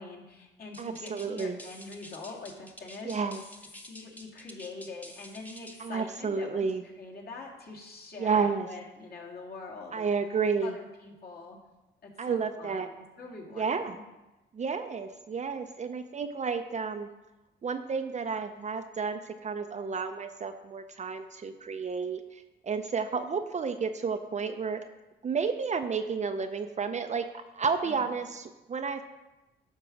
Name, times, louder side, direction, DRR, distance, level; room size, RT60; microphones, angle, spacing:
voice 1, 0.0-3.4 3.8-10.2 10.6-11.6 12.0-14.0 27.8-28.1, left 3 dB, 50° left, -2 dB, 2.2 m, -44 dB
sound 1, 0.7-5.9, equal, 10° left, 1.0 m, -49 dB
voice 2, 0.8-1.6 3.1-3.4 5.8-6.8 8.2-8.7 9.9-10.7 12.2-12.9 13.6-13.9 14.5-17.1 17.6-24.8 25.2-27.2 27.5-29.0, right 5 dB, 35° right, 7 dB, 0.6 m, -31 dB
10.0 x 3.7 x 6.0 m, 1.0 s
cardioid pair, 90°, 20 cm